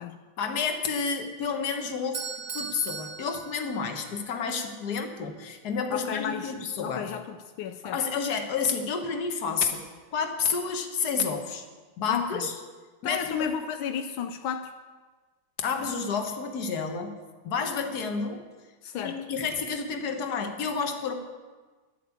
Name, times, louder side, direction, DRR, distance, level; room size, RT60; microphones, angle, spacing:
voice 1, 0.4-2.3 2.5-7.1 7.8-9.8 10.1-11.6 12.0-12.5 13.0-13.5 15.6-17.1 17.4-18.4 19.0-21.1, left 5 dB, 55° left, 5 dB, 1.7 m, -30 dB
Bell / Doorbell, 2.1-4.2, right 6 dB, 55° right, 1.2 m, -38 dB
voice 2, 5.9-8.0 12.1-12.5 13.0-14.7 18.8-19.2, left 8 dB, 85° left, 8 dB, 1.5 m, -33 dB
12.0 x 8.4 x 8.4 m, 1.3 s
omnidirectional pair, 2.2 m